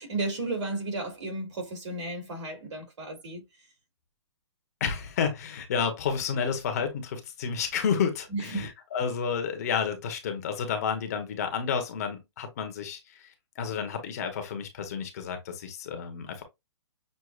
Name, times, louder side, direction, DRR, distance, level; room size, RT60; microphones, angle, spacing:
voice 1, 0.0-3.4 8.3-8.7, right 2 dB, 85° right, 2.9 m, -33 dB
voice 2, 4.8-16.4, left 6 dB, 35° left, 0.9 m, -31 dB
6.4 x 2.6 x 2.4 m
hypercardioid pair, 175°, 15 cm